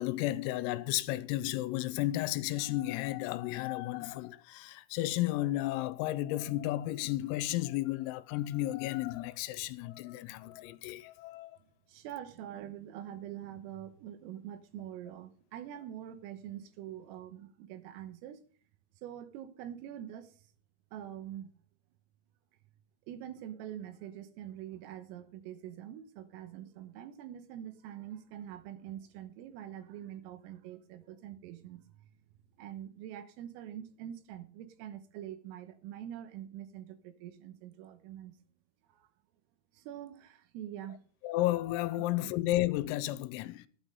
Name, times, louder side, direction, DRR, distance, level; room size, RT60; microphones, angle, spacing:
voice 1, 0.0-11.5 41.2-43.7, left 16 dB, 85° left, 3.4 m, -33 dB
voice 2, 11.6-18.4 19.0-20.5 20.9-21.5 23.1-32.1 32.6-38.4 38.9-39.1 39.7-41.0 42.0-42.3, right 11 dB, 80° right, 3.7 m, -45 dB
13.5 x 8.9 x 5.4 m
omnidirectional pair, 6.0 m